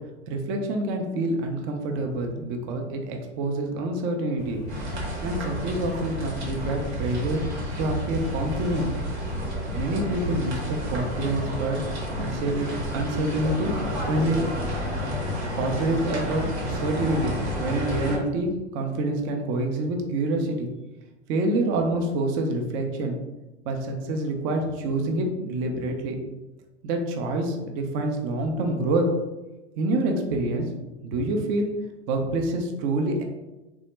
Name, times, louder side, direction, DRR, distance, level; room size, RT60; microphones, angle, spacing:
voice 1, 0.3-4.6 5.2-7.4 7.8-8.9 9.7-11.8 12.2-13.7 14.1-14.5 15.6-20.7 21.3-23.2 23.7-26.2 26.8-29.1 29.8-30.7 31.0-31.7 32.1-33.2, right 2 dB, 35° right, 3 dB, 0.5 m, -27 dB
sound 1, 4.4-11.7, left 2 dB, 45° left, 0.5 m, -37 dB
sound 2, 4.7-18.2, equal, 75° right, 1.1 m, -31 dB
3.4 x 2.0 x 3.0 m, 1.1 s
hypercardioid pair, 90°, 34 cm